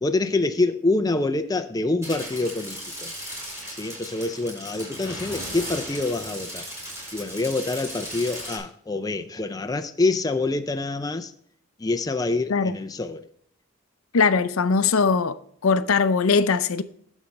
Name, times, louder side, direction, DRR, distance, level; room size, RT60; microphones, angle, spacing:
voice 1, 0.0-3.1 3.7-6.7 7.1-11.3 11.8-13.3, left 2 dB, 15° left, 0.5 m, -26 dB
sound 1, 2.0-8.6, equal, 15° right, 4.0 m, -36 dB
voice 2, 14.1-15.4 15.6-16.8, left 5 dB, 80° left, 0.6 m, -20 dB
9.4 x 7.2 x 3.3 m
head